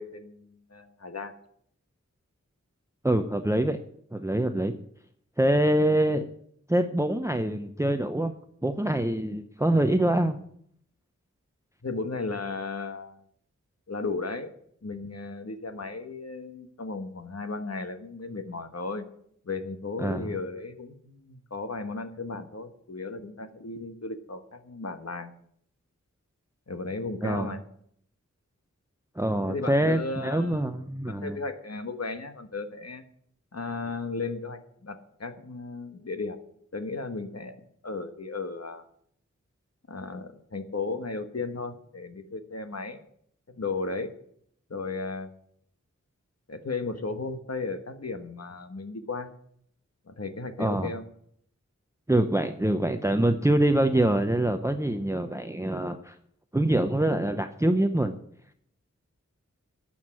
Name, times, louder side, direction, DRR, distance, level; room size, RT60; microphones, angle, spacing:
voice 1, 0.0-1.3 11.8-13.2 13.9-14.5 14.8-19.0 19.4-25.3 26.7-27.6 29.5-30.6 31.1-33.0 33.5-36.4 36.7-37.6 37.8-38.8 39.9-43.0 43.5-44.1 44.7-45.3 46.5-49.3 50.1-51.0, left 3 dB, 55° left, 8 dB, 1.4 m, -35 dB
voice 2, 3.0-3.8 4.1-4.7 5.4-6.3 6.7-8.3 8.6-10.4 20.0-20.3 27.2-27.6 29.2-31.4 50.6-50.9 52.1-56.1 56.5-58.2, right 1 dB, 10° right, 8 dB, 0.7 m, -25 dB
10.5 x 7.4 x 7.6 m, 0.68 s
wide cardioid pair, 50°, 30 cm